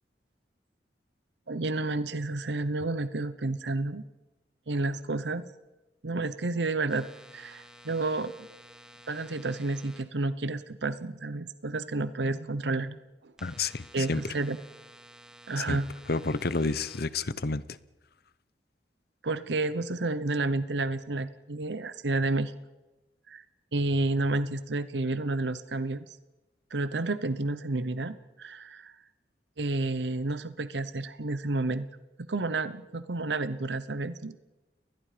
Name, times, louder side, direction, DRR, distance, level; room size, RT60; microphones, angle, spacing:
voice 1, 1.5-4.0 4.7-5.5 6.0-7.1 7.3-8.3 9.1-13.0 13.2-13.3 13.9-14.6 15.5-15.9 19.2-22.5 23.3-23.4 23.7-26.1 26.7-29.0 29.6-31.9 32.3-34.4, right 2 dB, 75° right, 14 dB, 0.9 m, -30 dB
sound 1, 6.9-10.0 13.4-17.0, equal, 5° right, 2.3 m, -52 dB
voice 2, 13.4-14.2 15.6-15.8 16.1-17.6, left 3 dB, 60° left, 17 dB, 0.9 m, -30 dB
30.0 x 21.0 x 5.1 m, 1.1 s
head